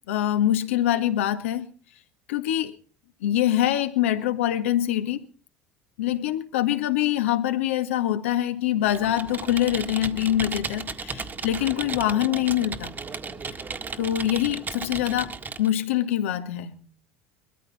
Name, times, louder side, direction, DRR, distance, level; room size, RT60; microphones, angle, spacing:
voice 1, 0.1-1.7 2.3-2.8 3.2-5.2 6.0-12.9 14.0-15.3 15.6-16.8, left 12 dB, 80° left, 1.9 m, -24 dB
Computer keyboard, 8.8-15.7, right 4 dB, 30° right, 1.7 m, -35 dB
23.0 x 14.0 x 4.3 m
hypercardioid pair, 80°, 7 cm